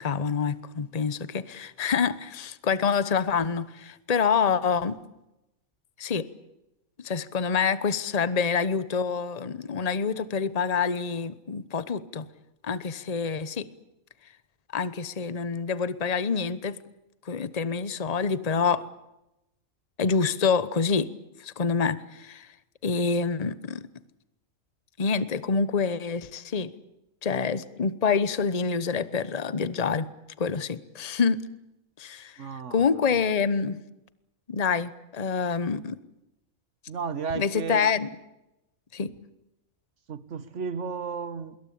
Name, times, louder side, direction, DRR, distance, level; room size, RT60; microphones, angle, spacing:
voice 1, 0.0-5.0 6.0-6.3 7.0-12.2 12.6-13.7 14.7-16.8 17.2-18.9 20.0-21.1 21.4-22.5 22.8-23.9 25.0-26.7 27.2-30.1 30.4-31.5 32.0-33.8 34.5-36.0 37.4-38.1 38.9-39.1, left 5 dB, 30° left, 15 dB, 1.0 m, -27 dB
voice 2, 32.4-32.9 36.9-37.9 40.1-41.6, right 5 dB, 55° right, 13 dB, 1.7 m, -33 dB
25.5 x 22.5 x 8.6 m, 0.92 s
omnidirectional pair, 1.5 m